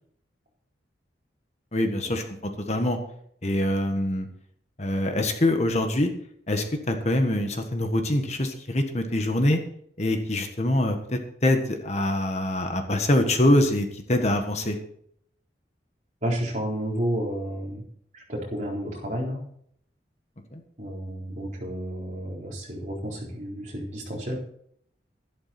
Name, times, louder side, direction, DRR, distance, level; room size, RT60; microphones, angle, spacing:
voice 1, 1.7-2.2 2.7-3.0 3.4-4.3 4.8-6.1 6.5-9.6 10.0-14.8 20.5-20.6, left 1 dB, 35° left, 5 dB, 1.4 m, -24 dB
voice 2, 16.2-17.8 18.1-19.4 20.8-24.4, equal, 40° right, -3 dB, 4.0 m, -31 dB
13.0 x 12.0 x 4.4 m, 0.66 s
head